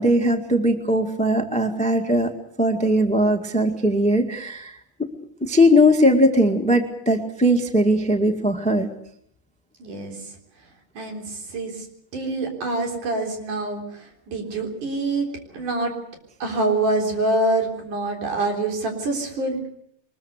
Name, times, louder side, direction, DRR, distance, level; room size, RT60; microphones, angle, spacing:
voice 1, 0.0-2.3 2.6-4.7 5.4-8.9, equal, 5° left, 6 dB, 1.0 m, -19 dB
voice 2, 9.8-10.4 11.0-11.9 12.1-15.3 15.5-15.9 16.4-19.7, right 2 dB, 80° right, 3 dB, 5.3 m, -25 dB
23.5 x 21.0 x 8.1 m, 0.69 s
omnidirectional pair, 3.5 m